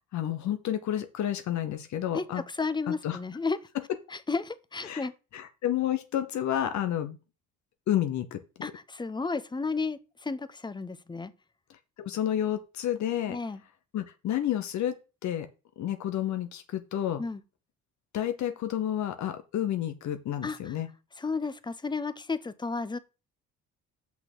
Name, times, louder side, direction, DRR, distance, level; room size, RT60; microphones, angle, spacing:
voice 1, 0.1-2.4 2.9-3.2 4.9-5.1 5.3-7.2 7.9-8.4 12.0-13.4 13.9-15.0 15.2-15.5 15.8-17.2 18.1-20.9, left 11 dB, 70° left, 0.9 m, -30 dB
voice 2, 2.1-3.6 4.1-5.1 8.6-11.3 13.3-13.6 17.2-17.4 20.4-20.8 21.2-23.0, left 4 dB, 15° left, 0.8 m, -33 dB
6.2 x 5.8 x 6.1 m
cardioid pair, 90°, 30 cm